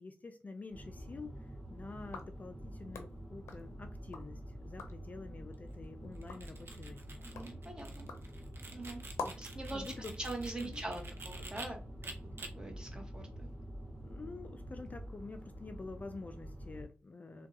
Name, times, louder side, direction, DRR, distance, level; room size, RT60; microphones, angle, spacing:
voice 1, 0.0-7.2 9.2-9.4 9.7-10.2 10.6-10.8 14.0-17.5, left 3 dB, 35° left, 7 dB, 0.3 m, -48 dB
sound 1, 0.7-16.9, equal, 5° left, 1.6 m, -47 dB
sound 2, 2.0-4.3 4.6-5.1 5.6-9.6, left 4 dB, 90° left, 0.5 m, -48 dB
sound 3, 6.2-11.7 12.0-12.5, right 3 dB, 60° right, 0.7 m, -49 dB
voice 2, 7.2-8.1 8.7-9.0 9.4-9.8 10.2-11.8 12.4-13.5, right 2 dB, 20° right, 1 dB, 1.2 m, -43 dB
3.5 x 2.3 x 2.7 m, 0.35 s
cardioid pair, 65°, 5 cm